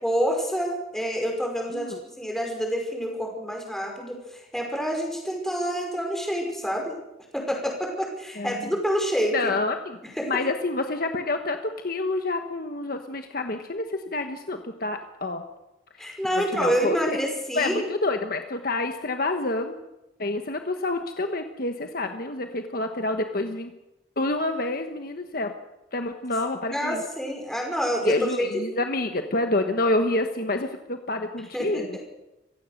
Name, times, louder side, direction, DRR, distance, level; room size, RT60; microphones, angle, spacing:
voice 1, 0.0-7.0 7.3-9.5 10.2-10.3 16.0-17.9 26.7-28.5 31.5-32.0, equal, ahead, 1 dB, 5.3 m, -27 dB
voice 2, 9.3-10.0 10.3-15.4 16.0-17.2 17.5-19.8 20.2-23.7 24.2-25.5 25.9-27.0 28.0-32.0, left 2 dB, 50° left, 6 dB, 1.3 m, -28 dB
26.0 x 16.0 x 6.7 m, 0.97 s
head